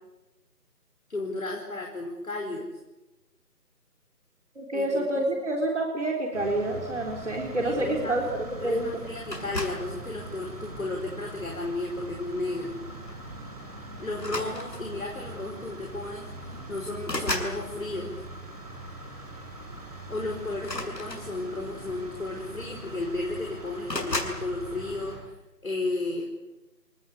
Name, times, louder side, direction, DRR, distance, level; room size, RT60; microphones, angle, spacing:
voice 1, 1.1-2.7 4.7-5.3 7.6-8.1 8.6-12.7 14.0-18.1 20.1-25.2 25.6-26.3, left 2 dB, 55° left, 0 dB, 5.1 m, -33 dB
voice 2, 4.6-8.9, right 1 dB, 45° right, 1 dB, 4.0 m, -28 dB
sound 1, 6.3-25.2, right 2 dB, 25° right, 5.7 m, -42 dB
sound 2, 9.3-9.9 10.8-11.1 12.6-12.8 13.1-13.3 14.1-15.0 16.0-16.1 16.4-17.6 20.6-21.7 22.6-22.7 22.9-23.4 23.9-24.4, left 2 dB, 85° left, 7.4 m, -34 dB
30.0 x 19.5 x 8.5 m, 1.0 s
figure-of-eight pair, 175°, 49 cm